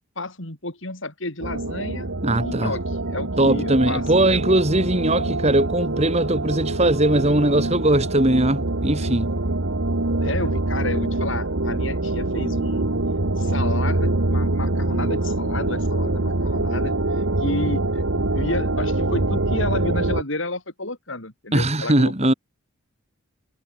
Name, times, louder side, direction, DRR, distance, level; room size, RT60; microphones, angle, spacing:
voice 1, 0.2-4.4 10.2-12.9 13.4-18.0 18.4-22.3, left 2 dB, 60° left, 4.4 m, -31 dB
sound 1, 1.4-20.2, right 2 dB, 70° right, 1.6 m, -24 dB
voice 2, 2.2-2.7 3.4-9.3 21.5-22.3, right 1 dB, 30° right, 2.5 m, -20 dB
head